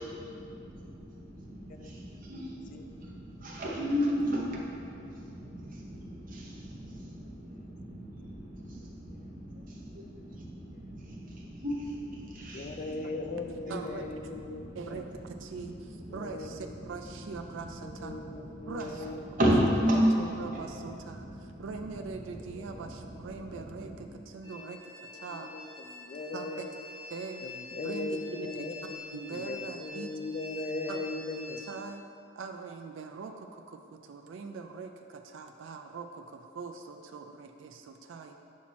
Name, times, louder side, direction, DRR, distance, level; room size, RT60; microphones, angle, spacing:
voice 1, 0.0-14.0 14.2-24.1, equal, 40° right, -3 dB, 0.8 m, -35 dB
voice 2, 12.5-15.0 16.1-16.5 17.8-19.2 22.6-22.8 23.4-23.6 24.6-24.7 25.3-26.7 27.4-31.6, left 3 dB, 40° left, 6 dB, 0.3 m, -39 dB
voice 3, 13.7-14.0 14.7-18.2 18.7-19.1 19.5-19.6 19.9-25.5 26.3-26.7 27.1-27.6 27.8-28.7 29.1-30.1 30.9-31.0 31.6-32.0 32.4-38.3, right 4 dB, 65° right, 5 dB, 0.3 m, -42 dB
sound 1, 24.4-31.7, left 4 dB, 15° left, 0.7 m, -46 dB
5.8 x 4.5 x 4.1 m, 2.6 s
head